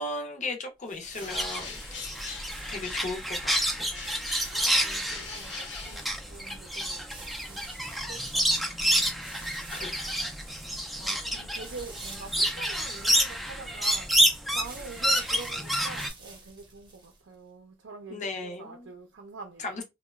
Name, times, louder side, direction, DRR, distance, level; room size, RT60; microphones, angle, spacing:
voice 1, 0.0-2.4 2.7-3.9 4.8-5.0 9.7-10.1 18.1-18.9 19.6-19.8, left 2 dB, 40° left, 0.6 m, -37 dB
sound 1, 0.8-17.4, right 3 dB, 25° right, 0.7 m, -50 dB
Bird, 1.1-3.2 3.5-6.6, left 4 dB, 75° left, 0.9 m, -43 dB
sound 2, 1.3-16.1, equal, ahead, 0.3 m, -29 dB
voice 2, 3.9-7.1 7.5-9.2 11.0-19.8, right 4 dB, 70° right, 0.4 m, -46 dB
2.9 x 2.1 x 2.3 m
head